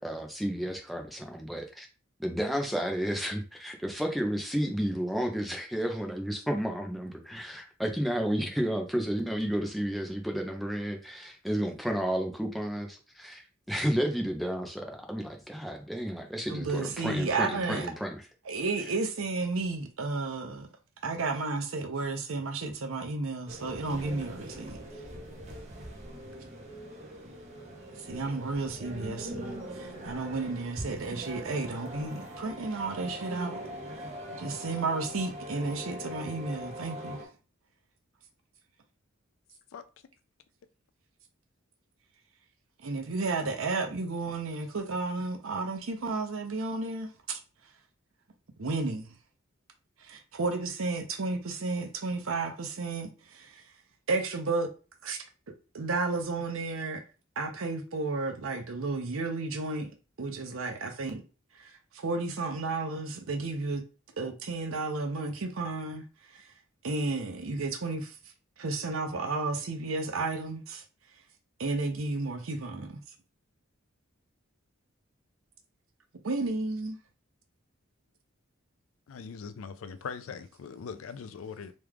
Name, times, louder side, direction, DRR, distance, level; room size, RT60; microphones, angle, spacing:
voice 1, 0.0-1.9 2.2-18.2, equal, ahead, 0.4 m, -32 dB
voice 2, 16.5-17.9 18.5-20.7 21.0-24.7 28.1-33.6 34.3-37.2 42.8-47.4 48.6-49.1 50.0-53.6 54.1-54.7 55.0-55.2 55.7-57.0 57.4-59.9 60.2-61.2 61.6-63.8 64.2-66.0 66.3-66.4 66.8-68.2 68.6-70.8 71.6-73.0 76.2-77.0, right 3 dB, 75° right, 0.7 m, -32 dB
sound 1, 23.5-37.3, equal, 30° right, 0.7 m, -42 dB
voice 3, 79.1-81.7, left 6 dB, 75° left, 0.4 m, -41 dB
3.0 x 2.3 x 3.4 m
head